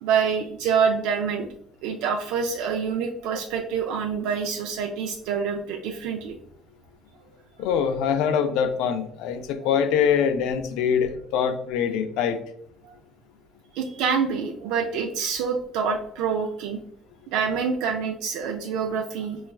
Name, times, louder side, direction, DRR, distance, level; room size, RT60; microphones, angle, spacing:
voice 1, 0.0-1.5 1.8-6.4 9.6-9.7 12.8-12.9 13.7-16.8 17.3-19.4, right 6 dB, 80° right, 2 dB, 0.3 m, -26 dB
voice 2, 7.6-12.4, left 7 dB, 75° left, 9 dB, 0.4 m, -24 dB
4.2 x 2.3 x 2.2 m, 0.68 s
cardioid pair, 170°, 0 cm